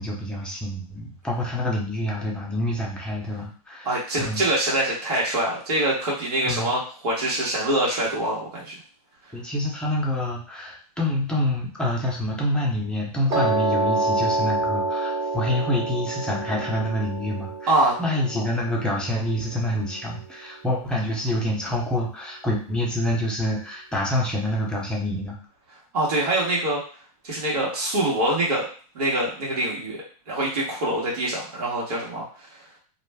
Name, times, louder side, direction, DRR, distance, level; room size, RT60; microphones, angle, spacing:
voice 1, 0.0-4.5 6.4-6.7 9.3-17.7 18.0-25.4, left 1 dB, 5° left, -3 dB, 0.7 m, -27 dB
voice 2, 3.8-8.7 17.7-17.9 25.9-26.8 27.2-28.7 28.9-30.0 30.3-32.5, right 1 dB, 80° right, -5 dB, 1.1 m, -24 dB
Piano, 13.3-19.4, right 2 dB, 35° right, 0.9 m, -27 dB
2.4 x 2.1 x 3.4 m, 0.40 s
hypercardioid pair, 135°, 20 cm